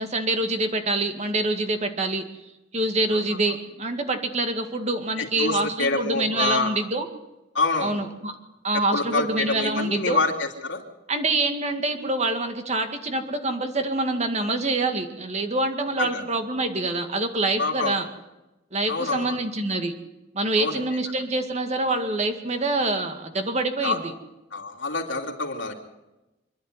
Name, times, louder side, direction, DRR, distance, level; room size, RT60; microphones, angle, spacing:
voice 1, 0.0-2.2 2.7-7.1 7.8-8.3 8.6-10.2 11.1-18.0 18.7-19.9 20.3-24.1, right 2 dB, 35° right, 6 dB, 2.1 m, -26 dB
voice 2, 5.2-6.7 7.5-8.0 8.9-10.8 16.0-16.2 17.6-17.9 18.9-19.4 20.6-20.8 23.8-24.0 24.5-25.7, left 3 dB, 80° left, 1 dB, 3.1 m, -26 dB
26.0 x 11.0 x 9.5 m, 1.0 s
head